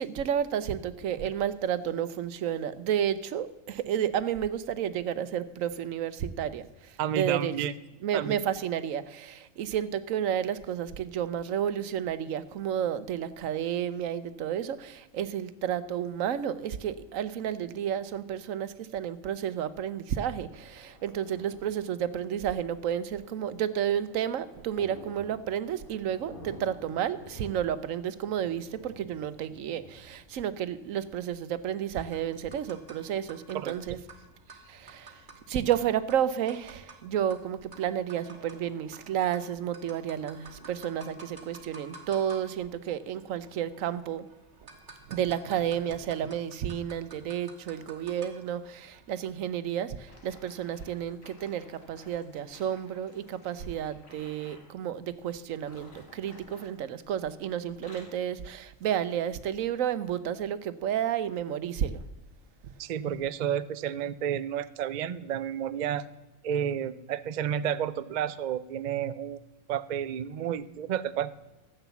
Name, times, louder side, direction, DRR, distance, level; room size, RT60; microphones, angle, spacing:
voice 1, 0.0-7.5 8.0-34.0 34.7-35.1 35.5-44.3 45.1-62.0, right 9 dB, 85° right, 14 dB, 1.1 m, -31 dB
voice 2, 7.0-7.7 8.1-8.4 33.5-33.7 62.8-66.1 66.4-69.4 69.7-71.4, right 9 dB, 60° right, 15 dB, 0.4 m, -31 dB
Thunder, 20.0-38.9, left 1 dB, 40° left, 3.7 m, -54 dB
sound 1, 32.1-49.6, right 3 dB, 40° right, 1.6 m, -52 dB
sound 2, 50.0-54.7 55.5-57.3 57.6-58.3 58.9-59.1 59.7-59.8, left 2 dB, 85° left, 2.6 m, -54 dB
13.0 x 8.0 x 7.0 m, 1.1 s
omnidirectional pair, 1.3 m